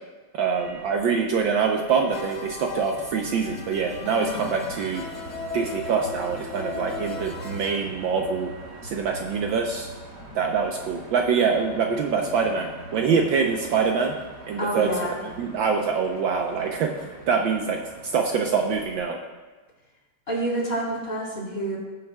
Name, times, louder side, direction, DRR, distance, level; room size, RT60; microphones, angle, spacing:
voice 1, 0.3-5.0 5.5-8.5 8.8-9.9 10.3-14.2 14.5-14.9 15.4-16.9 17.3-17.8 18.1-19.2, right 5 dB, 70° right, 2 dB, 1.3 m, -24 dB
Motor vehicle (road), 0.5-19.0, right 1 dB, 50° right, 3.0 m, -42 dB
sound 1, 2.1-7.8, left 4 dB, 55° left, 1.2 m, -37 dB
voice 2, 4.1-4.7 14.6-15.2 20.3-21.8, right 1 dB, 25° left, -5 dB, 2.8 m, -28 dB
18.0 x 7.6 x 2.2 m, 1.3 s
omnidirectional pair, 2.4 m